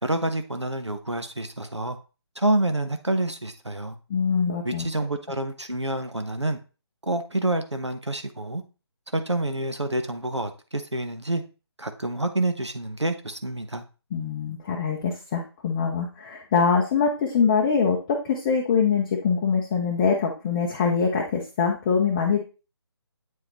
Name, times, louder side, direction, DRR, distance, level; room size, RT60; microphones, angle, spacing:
voice 1, 0.0-2.0 2.4-4.0 4.6-6.6 7.0-8.6 9.1-11.4 11.8-13.8, right 1 dB, 90° right, 7 dB, 1.0 m, -27 dB
voice 2, 4.1-4.9 14.1-22.4, left 6 dB, 15° left, 0 dB, 0.6 m, -23 dB
8.1 x 4.9 x 3.1 m, 0.32 s
figure-of-eight pair, 150°, 14 cm